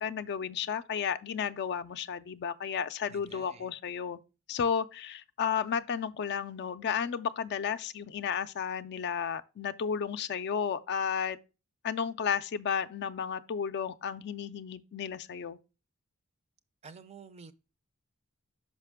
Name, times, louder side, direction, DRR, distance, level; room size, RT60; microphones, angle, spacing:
voice 1, 0.0-4.2 4.5-11.4 11.8-15.6, left 7 dB, 50° left, 0.4 m, -33 dB
voice 2, 3.1-3.7 16.8-17.5, right 5 dB, 30° right, 0.4 m, -50 dB
5.7 x 5.2 x 3.4 m
head